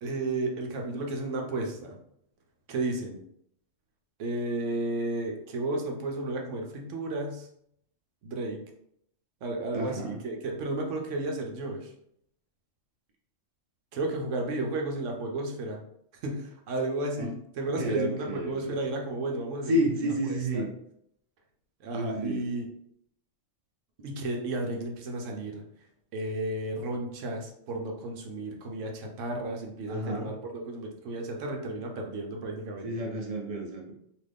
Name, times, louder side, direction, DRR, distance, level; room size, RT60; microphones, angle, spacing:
voice 1, 0.0-1.9 2.7-3.2 4.2-7.5 8.2-8.6 9.4-11.9 13.9-15.8 16.2-20.0 20.5-20.6 21.8-22.7 24.0-25.6 26.1-33.1, right 2 dB, 80° right, 2 dB, 1.0 m, -33 dB
voice 2, 9.7-10.2 17.2-17.3 17.8-18.8 19.7-20.7 21.9-22.5 29.9-30.3 32.8-33.9, right 1 dB, 35° right, -1 dB, 0.7 m, -30 dB
2.9 x 2.5 x 3.3 m, 0.72 s
omnidirectional pair, 1.3 m